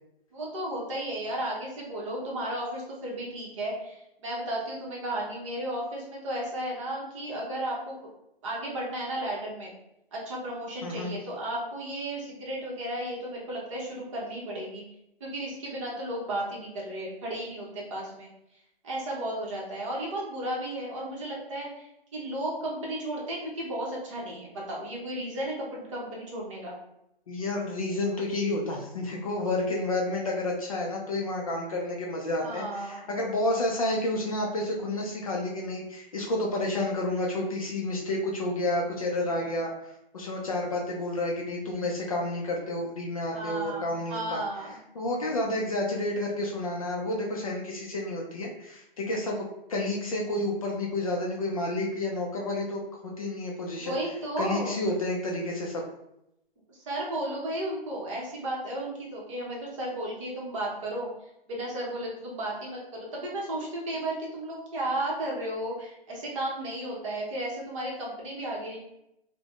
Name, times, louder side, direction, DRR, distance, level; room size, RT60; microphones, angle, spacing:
voice 1, 0.3-7.9 8.4-9.7 10.1-14.8 15.2-18.3 18.8-26.8 32.4-33.1 43.3-44.8 53.7-54.8 56.7-61.1 61.5-68.8, right 1 dB, 35° right, -4 dB, 0.8 m, -34 dB
voice 2, 10.8-11.1 27.3-44.4 44.9-54.0 54.4-55.8, left 1 dB, 40° left, -1 dB, 0.4 m, -30 dB
3.3 x 2.1 x 2.3 m, 0.83 s
hypercardioid pair, 150°, 29 cm